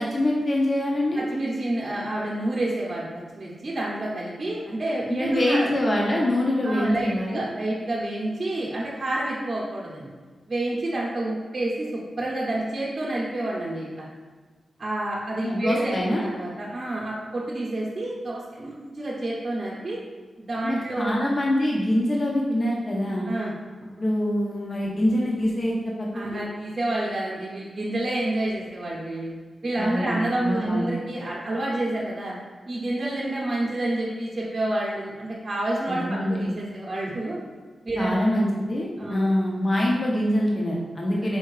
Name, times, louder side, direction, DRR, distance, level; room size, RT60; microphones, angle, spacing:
voice 1, 0.0-1.2 5.1-7.4 15.4-16.2 20.6-23.2 24.0-26.4 29.8-30.9 35.9-36.5 38.0-41.4, left 1 dB, 35° left, -3 dB, 0.6 m, -24 dB
voice 2, 1.2-3.1 3.3-5.7 6.6-10.1 10.5-14.1 14.8-20.0 20.4-21.1 23.3-23.5 26.1-29.3 29.6-32.3 32.7-37.4 37.8-38.3 39.0-39.3, right 1 dB, 35° right, -6 dB, 0.7 m, -29 dB
4.5 x 2.7 x 3.1 m, 1.4 s
wide cardioid pair, 100°, 0 cm